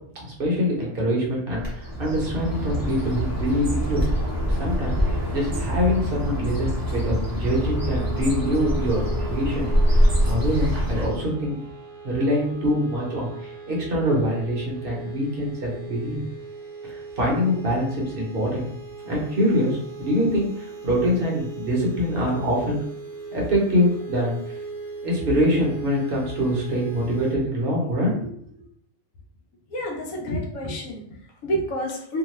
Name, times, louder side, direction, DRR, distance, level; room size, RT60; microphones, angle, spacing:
voice 1, 0.2-4.0 4.5-11.6 12.0-16.2 17.2-18.6 19.0-22.8 23.3-24.3 25.0-28.3, equal, 45° right, -3 dB, 0.9 m, -24 dB
Bird, 1.6-11.3, equal, 20° right, 0.8 m, -24 dB
sound 1, 7.5-27.4, right 4 dB, 75° right, 1.0 m, -38 dB
voice 2, 29.7-32.2, equal, 70° left, 1 dB, 1.0 m, -29 dB
2.8 x 2.2 x 3.1 m, 0.69 s
omnidirectional pair, 1.5 m